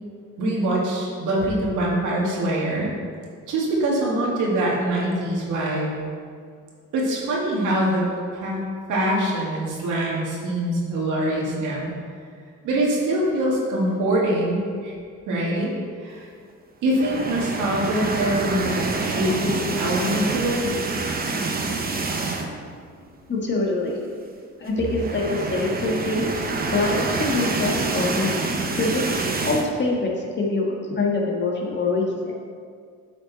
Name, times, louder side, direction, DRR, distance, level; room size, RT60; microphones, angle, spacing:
voice 1, 0.4-2.9 3.5-5.9 6.9-8.1 8.3-8.6 8.9-11.9 12.6-14.9 15.3-15.7 16.0-16.3 16.8-20.7, right 1 dB, 85° right, -4 dB, 2.0 m, -24 dB
sound 1, 16.9-22.7 23.1-23.2 23.5-23.6 24.7-29.7, right 3 dB, 30° right, 0.9 m, -27 dB
voice 2, 23.3-24.0 24.6-26.3 26.7-28.3 28.8-29.1 29.4-32.3, left 3 dB, 35° left, -2 dB, 1.6 m, -24 dB
8.9 x 5.3 x 4.1 m, 2.1 s
cardioid pair, 90°, 30 cm